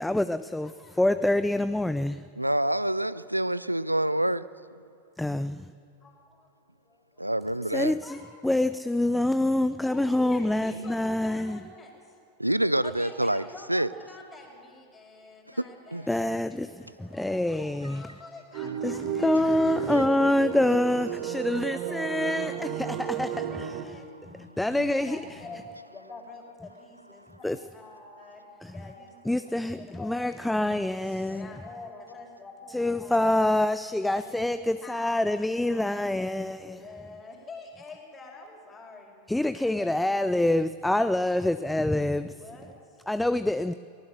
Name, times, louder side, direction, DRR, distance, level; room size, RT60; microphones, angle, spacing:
voice 1, 0.0-0.7 1.0-2.2 5.2-5.6 7.7-8.0 8.4-11.6 16.1-16.7 17.0-18.0 18.8-18.9 19.2-23.3 24.6-25.2 27.4-27.6 29.3-29.8 30.1-31.5 32.7-36.8 39.3-42.3 43.1-43.7, left 1 dB, 5° left, 0.5 m, -26 dB
voice 2, 0.6-1.0 1.9-2.0 6.0-6.5 6.8-7.3 7.8-8.6 9.8-12.2 12.8-16.8 17.1-20.1 21.7-24.1 24.7-33.5 33.8-39.2 39.6-40.3 42.3-43.1, left 3 dB, 20° left, 5.2 m, -47 dB
voice 3, 2.4-4.4 7.2-7.9 10.7-10.9 12.4-13.9 15.6-15.7 15.9-16.1 19.9-20.0 24.3-25.0, right 1 dB, 90° right, 0.4 m, -27 dB
sound 1, 18.5-23.9, right 9 dB, 45° right, 1.3 m, -33 dB
23.0 x 19.5 x 6.6 m
figure-of-eight pair, 90°, 0 cm